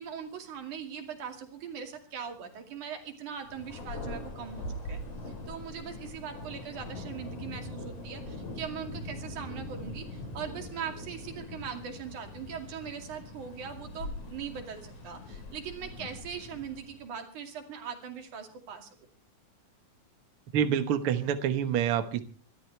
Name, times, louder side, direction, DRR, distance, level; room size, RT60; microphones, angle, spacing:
voice 1, 0.0-5.0 5.5-19.0, right 7 dB, 90° right, 5 dB, 3.9 m, -41 dB
Thunder, 3.4-17.1, left 1 dB, 75° left, 5.1 m, -42 dB
voice 2, 20.5-22.2, right 9 dB, 55° right, 9 dB, 1.8 m, -27 dB
28.0 x 13.0 x 3.3 m, 0.37 s
omnidirectional pair, 3.4 m